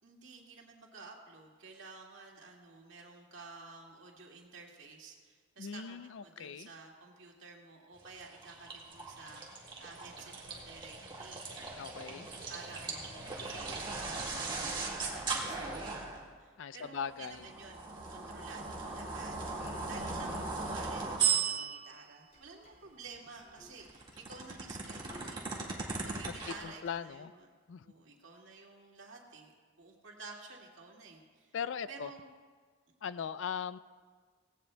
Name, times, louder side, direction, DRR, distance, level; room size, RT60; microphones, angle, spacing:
voice 1, 0.0-11.7 12.1-17.8 18.1-25.5 26.0-27.5 27.8-31.5 31.9-32.3, right 4 dB, 65° right, -1 dB, 2.1 m, -52 dB
voice 2, 5.6-6.7 11.8-12.3 16.6-17.5 19.6-20.5 26.3-27.3 27.7-27.9 31.5-32.1 33.0-33.8, left 7 dB, 65° left, 15 dB, 0.4 m, -40 dB
sound 1, 8.0-16.3 17.2-22.0 23.6-26.5, right 5 dB, 25° right, 1.7 m, -38 dB
sound 2, 22.3-25.6 26.0-26.9, left 1 dB, 45° left, 3.6 m, -58 dB
17.5 x 17.5 x 2.2 m, 1.6 s
head